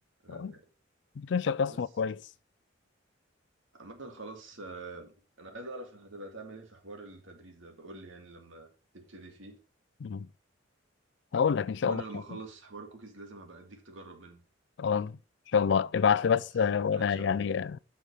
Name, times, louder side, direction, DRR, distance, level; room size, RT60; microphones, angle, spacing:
voice 1, 0.2-0.6 1.7-1.8 3.7-8.7 8.9-9.6 11.8-14.4 16.2-16.4 16.9-17.6, right 2 dB, 80° right, 2.1 m, -46 dB
voice 2, 1.2-2.2 10.0-10.3 11.3-12.0 14.8-15.1 15.5-17.8, left 6 dB, 60° left, 0.4 m, -27 dB
8.3 x 5.8 x 5.3 m
head